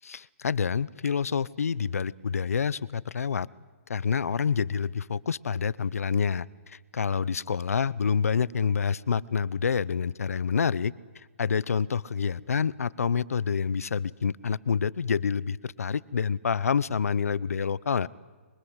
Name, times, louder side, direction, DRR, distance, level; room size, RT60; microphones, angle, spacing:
voice 1, 0.0-3.5 3.9-18.1, left 6 dB, 80° left, 21 dB, 0.9 m, -28 dB
25.0 x 24.0 x 8.1 m, 1.5 s
hypercardioid pair, 170°, 8 cm